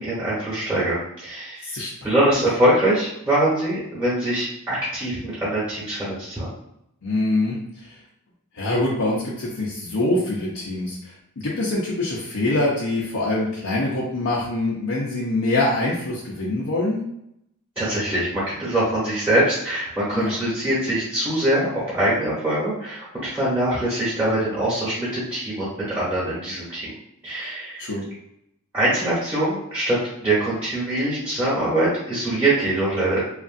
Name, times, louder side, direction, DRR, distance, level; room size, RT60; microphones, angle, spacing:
voice 1, 0.0-1.8 2.0-6.5 17.8-26.9 27.2-27.8 28.7-33.2, right 1 dB, 5° right, -9 dB, 1.1 m, -23 dB
voice 2, 7.0-7.6 8.5-11.1 11.4-17.0 20.1-20.3 27.8-28.0, left 2 dB, 85° left, -5 dB, 0.7 m, -24 dB
2.9 x 2.5 x 2.5 m, 0.77 s
head